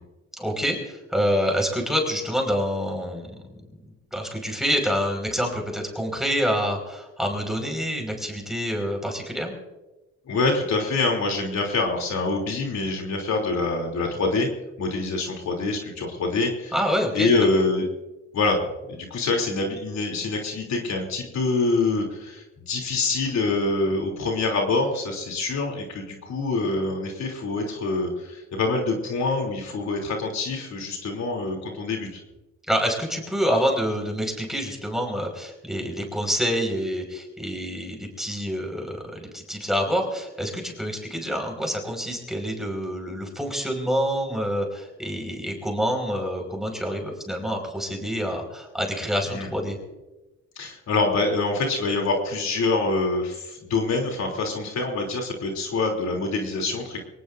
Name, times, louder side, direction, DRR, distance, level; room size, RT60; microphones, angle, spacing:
voice 1, 0.4-3.5 4.1-9.5 16.7-17.3 32.7-49.8, equal, ahead, 2 dB, 5.3 m, -27 dB
voice 2, 10.3-14.5 14.8-16.7 17.1-17.9 18.3-18.6 18.9-32.2 49.3-49.5 50.5-57.0, left 3 dB, 65° left, 1 dB, 3.3 m, -25 dB
23.5 x 19.5 x 2.7 m, 1.1 s
cardioid pair, 90°, 30 cm